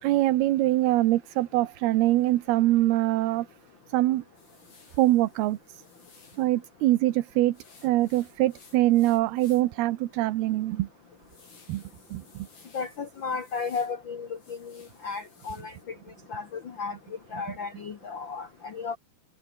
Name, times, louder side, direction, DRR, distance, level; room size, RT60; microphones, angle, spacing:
voice 1, 0.0-3.5 3.9-4.2 5.0-5.8 6.4-7.6 7.8-10.9 11.7-11.8 12.1-12.5, right 16 dB, 75° right, 2.9 m, -24 dB
sound 1, 4.3-6.5 7.5-9.8 10.2-10.3 10.8-14.0 14.3-15.8, left 4 dB, 55° left, 9.2 m, -57 dB
voice 2, 12.7-15.7 16.3-17.0 17.3-19.0, left 5 dB, 80° left, 1.0 m, -34 dB
omnidirectional pair, 4.7 m